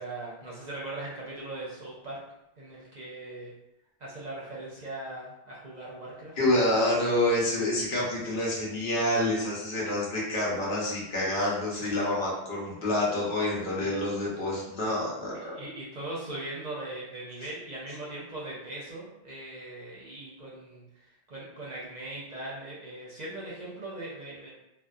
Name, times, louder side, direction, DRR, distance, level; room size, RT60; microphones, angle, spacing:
voice 1, 0.0-2.2 2.6-3.5 4.0-6.3 11.8-12.0 13.8-13.9 14.8-14.9 15.3-24.5, right 2 dB, 50° right, -5 dB, 0.6 m, -40 dB
voice 2, 6.4-15.5, left 1 dB, 70° left, -5 dB, 1.0 m, -27 dB
2.6 x 2.1 x 2.3 m, 0.89 s
omnidirectional pair, 1.1 m